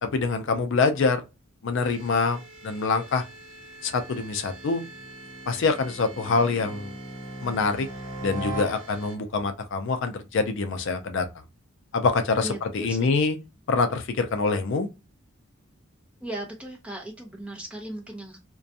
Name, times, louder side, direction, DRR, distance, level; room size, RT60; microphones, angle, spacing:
voice 1, 0.0-1.2 1.6-3.2 3.8-4.9 5.5-6.9 7.4-7.9 8.2-11.3 11.9-13.4 13.7-14.9, left 4 dB, 60° left, 0.4 m, -25 dB
sound 1, 1.8-9.2, right 3 dB, 60° right, 0.7 m, -47 dB
sound 2, 3.1-9.4, right 1 dB, 40° left, 1.0 m, -40 dB
voice 2, 12.4-13.1 16.2-18.4, right 1 dB, 5° right, 0.7 m, -37 dB
2.4 x 2.2 x 2.6 m
head